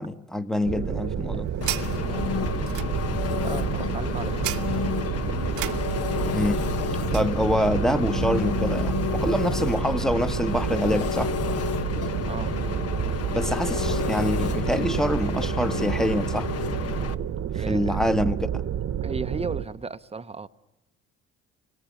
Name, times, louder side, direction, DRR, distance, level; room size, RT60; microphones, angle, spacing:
voice 1, 0.0-1.5 6.3-6.6 7.1-11.3 13.3-16.5 17.7-18.6, equal, ahead, 1.0 m, -26 dB
sound 1, 0.6-19.6, right 9 dB, 50° right, 1.2 m, -29 dB
sound 2, 0.8-7.4, right 15 dB, 70° right, 0.8 m, -38 dB
Engine, 1.6-17.1, left 7 dB, 50° left, 1.1 m, -30 dB
voice 2, 2.1-2.4 3.3-4.8 12.2-12.5 17.5-18.0 19.0-20.5, right 4 dB, 20° right, 0.8 m, -35 dB
29.5 x 22.0 x 7.2 m
supercardioid pair, 75°, 31 cm